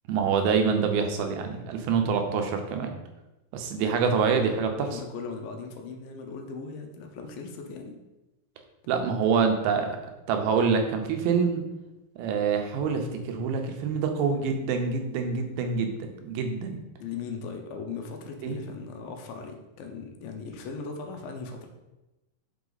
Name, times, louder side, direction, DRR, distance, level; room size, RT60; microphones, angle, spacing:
voice 1, 0.1-2.9 3.5-5.0 8.9-10.0 10.3-11.6 12.2-16.8 18.4-18.6, right 5 dB, 85° right, 5 dB, 2.6 m, -26 dB
voice 2, 4.8-8.0 17.0-21.7, left 5 dB, 75° left, 3 dB, 2.4 m, -38 dB
5.9 x 5.7 x 3.9 m, 1.0 s
omnidirectional pair, 4.2 m